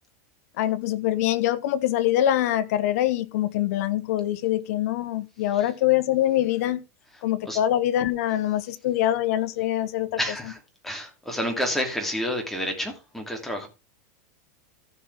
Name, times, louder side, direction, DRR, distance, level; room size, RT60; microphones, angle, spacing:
voice 1, 0.6-6.8 7.2-10.2, left 12 dB, 65° left, 1.1 m, -24 dB
voice 2, 10.2-13.7, equal, 5° left, 2.9 m, -29 dB
15.0 x 5.6 x 3.5 m
supercardioid pair, 135°, 9 cm